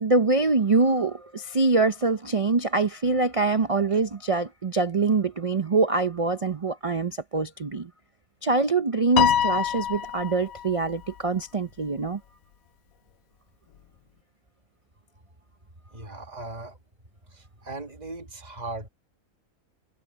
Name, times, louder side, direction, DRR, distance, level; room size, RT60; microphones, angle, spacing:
voice 1, 0.0-7.9 8.4-12.2, right 3 dB, 65° right, 0.3 m, -24 dB
Piano, 9.2-10.7, left 9 dB, 70° left, 1.0 m, -24 dB
voice 2, 15.9-16.8 17.3-18.9, right 2 dB, 30° right, 2.0 m, -38 dB
omnidirectional pair, 1.6 m